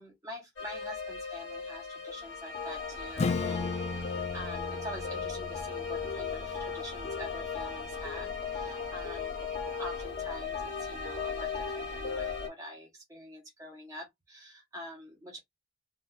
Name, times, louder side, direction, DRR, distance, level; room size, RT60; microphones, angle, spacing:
voice 1, 0.0-9.4 9.8-15.4, equal, 15° right, 0.8 m, -45 dB
sound 1, 0.6-12.5, left 5 dB, 60° left, 1.1 m, -37 dB
Acoustic guitar / Strum, 3.2-8.4, left 3 dB, 30° left, 0.3 m, -37 dB
3.9 x 2.3 x 2.2 m
head